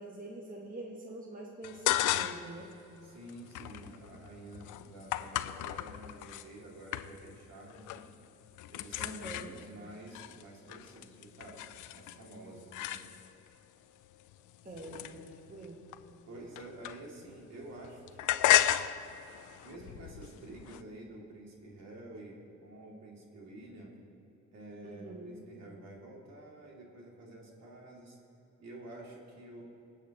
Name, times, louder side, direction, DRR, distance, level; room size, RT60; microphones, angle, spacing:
voice 1, 0.0-2.7 9.0-9.6 14.6-15.8 24.8-25.4, right 2 dB, 30° right, 0 dB, 1.2 m, -45 dB
sound 1, 1.6-2.6 2.9-6.5 6.9-7.4 7.7-8.1 8.4-13.5 14.1-17.3 17.6-20.8, left 13 dB, 85° left, 0.5 m, -34 dB
voice 2, 3.0-8.1 8.7-13.0 14.8-15.0 16.3-18.5 19.6-24.0 24.5-28.2 28.6-29.6, right 1 dB, 60° right, -2 dB, 2.5 m, -49 dB
21.0 x 8.3 x 3.0 m, 3.0 s
cardioid pair, 90°, 30 cm